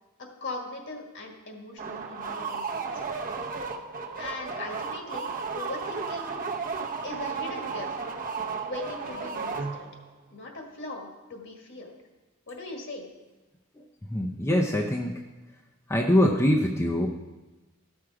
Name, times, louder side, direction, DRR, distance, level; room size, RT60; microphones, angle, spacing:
voice 1, 0.2-3.1 4.2-6.4 7.0-8.0 8.6-9.9 10.3-11.9 12.5-13.1, left 2 dB, 55° left, 2 dB, 1.7 m, -39 dB
sound 1, 1.8-10.1, right 5 dB, 40° right, 0.8 m, -34 dB
voice 2, 14.1-15.1 15.9-17.1, left 1 dB, 15° left, 1 dB, 0.5 m, -23 dB
13.0 x 6.2 x 4.8 m, 1.1 s
head